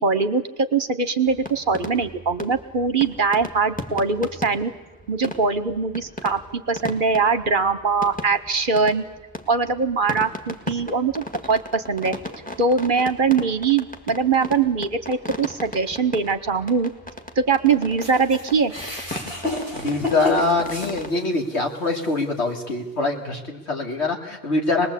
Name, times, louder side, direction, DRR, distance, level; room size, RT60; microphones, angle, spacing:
voice 1, 0.0-4.7 5.1-9.0 9.5-12.1 12.6-16.9 17.4-18.7, right 5 dB, 50° right, 12 dB, 1.1 m, -22 dB
sound 1, 1.3-21.1, left 1 dB, 5° left, 1.8 m, -37 dB
sound 2, 18.0-21.5 22.0-22.1 23.1-23.2, left 1 dB, 55° left, 6.2 m, -30 dB
voice 2, 19.7-24.9, left 3 dB, 75° left, 2 dB, 3.1 m, -24 dB
26.0 x 20.0 x 8.4 m, 1.1 s
omnidirectional pair, 1.1 m